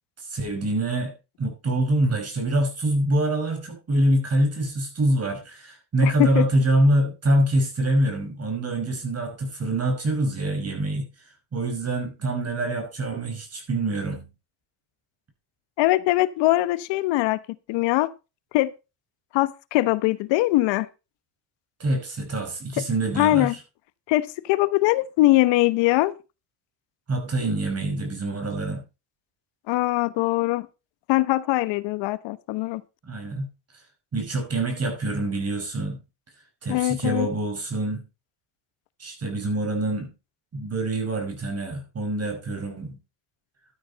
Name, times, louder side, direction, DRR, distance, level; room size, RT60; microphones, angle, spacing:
voice 1, 0.2-11.0 11.5-14.3 21.8-23.5 27.1-28.8 33.1-33.5 34.1-36.0 36.6-38.0 39.0-40.1 40.5-43.0, right 1 dB, 35° right, 5.4 m, -25 dB
voice 2, 6.0-6.5 15.8-17.4 17.7-18.1 18.5-18.7 19.3-20.9 23.2-23.5 24.1-26.1 29.7-30.7 31.1-32.8 36.7-37.3, left 18 dB, 75° left, 1.1 m, -22 dB
12.5 x 9.2 x 4.1 m
supercardioid pair, 90°, 44 cm